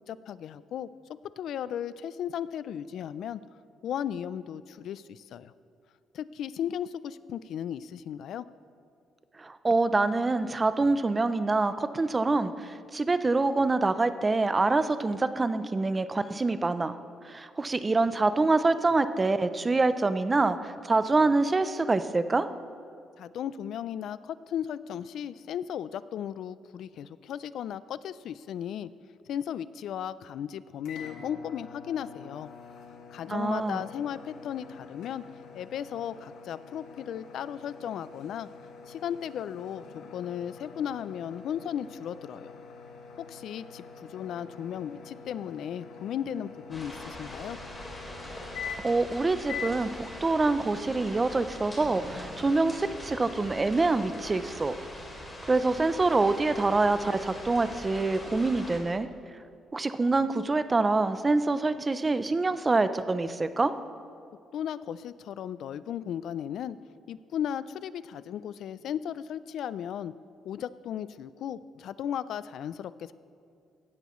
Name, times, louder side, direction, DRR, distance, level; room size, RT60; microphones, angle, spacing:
voice 1, 0.1-0.9 1.4-3.4 3.8-5.5 6.1-8.4 23.2-28.9 29.3-32.5 33.1-35.2 35.5-38.5 38.9-39.9 40.1-42.6 43.2-47.6 64.5-66.8 67.1-70.1 70.5-73.1, left 9 dB, 65° left, 16 dB, 0.3 m, -35 dB
voice 2, 9.4-16.9 17.2-22.5 33.3-33.8 48.8-54.7 55.5-59.1 59.7-63.7, right 3 dB, 20° right, 12 dB, 0.5 m, -26 dB
sound 1, 30.8-49.1 49.5-49.8, left 6 dB, 85° left, 1.3 m, -45 dB
sound 2, 46.7-58.8, left 1 dB, 20° left, 2.8 m, -42 dB
17.0 x 12.5 x 3.1 m, 2.4 s
cardioid pair, 150°, 0 cm